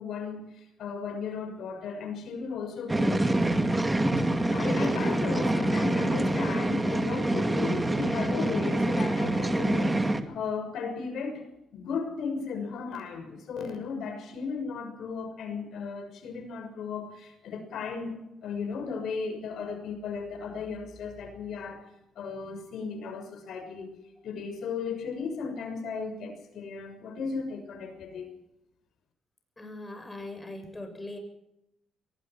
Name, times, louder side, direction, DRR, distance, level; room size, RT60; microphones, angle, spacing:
voice 1, 0.0-3.3 4.2-11.5 11.7-21.9 22.1-23.9 24.2-28.3, left 5 dB, 70° left, 7 dB, 6.5 m, -35 dB
sound 1, 2.9-10.2, right 1 dB, 15° right, 2.2 m, -26 dB
voice 2, 29.6-31.2, left 2 dB, 15° left, 5 dB, 7.7 m, -40 dB
23.0 x 19.5 x 6.0 m, 0.83 s
cardioid pair, 90°, 0 cm